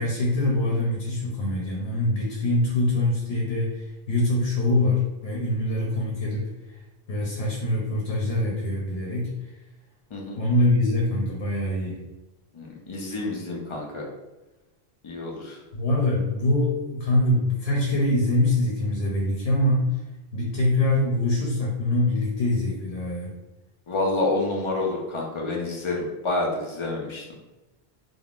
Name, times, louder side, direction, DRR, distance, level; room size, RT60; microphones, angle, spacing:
voice 1, 0.0-6.5 7.1-9.3 10.4-12.0 15.7-20.0 20.3-23.3, left 1 dB, 70° left, -3 dB, 0.9 m, -24 dB
voice 2, 10.1-10.4 12.5-14.1 15.0-15.6 23.9-27.2, left 2 dB, 50° left, -1 dB, 0.3 m, -28 dB
3.4 x 2.1 x 2.4 m, 1.1 s
omnidirectional pair, 1.1 m